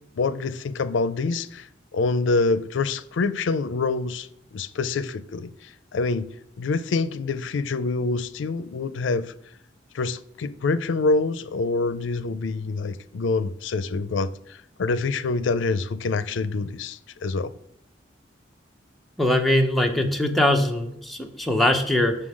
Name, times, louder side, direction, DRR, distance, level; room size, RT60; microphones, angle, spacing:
voice 1, 0.2-6.3 6.6-9.3 9.9-17.5, left 3 dB, 90° left, 0.4 m, -26 dB
voice 2, 19.2-22.2, left 1 dB, ahead, 0.7 m, -21 dB
6.5 x 3.8 x 6.3 m
head